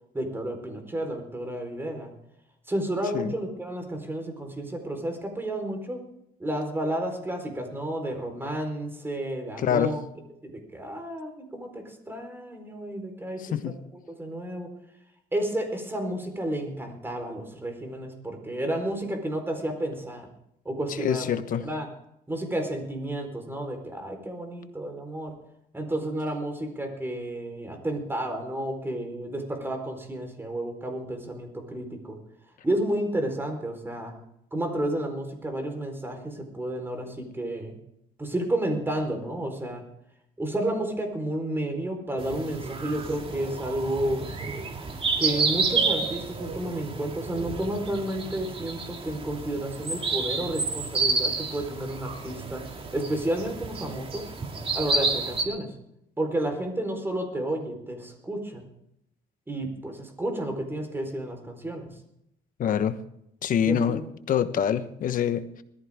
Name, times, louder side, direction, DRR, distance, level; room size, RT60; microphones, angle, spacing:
voice 1, 0.1-2.1 2.7-6.0 6.4-10.0 10.4-13.7 14.1-14.7 15.3-20.3 20.6-21.3 21.6-21.9 22.3-25.3 25.7-32.2 32.6-34.1 34.5-37.7 38.2-39.8 40.4-44.2 45.2-52.6 52.9-54.2 54.7-55.7 56.2-58.6 59.5-61.9 63.6-64.0, right 1 dB, 15° right, 4.4 m, -31 dB
voice 2, 9.6-9.9 13.5-13.7 21.0-21.6 62.6-63.0 63.4-65.6, left 8 dB, 55° left, 1.2 m, -25 dB
sound 1, 42.2-55.4, right 4 dB, 35° right, 2.7 m, -30 dB
20.5 x 14.5 x 3.7 m
cardioid pair, 110°, 17 cm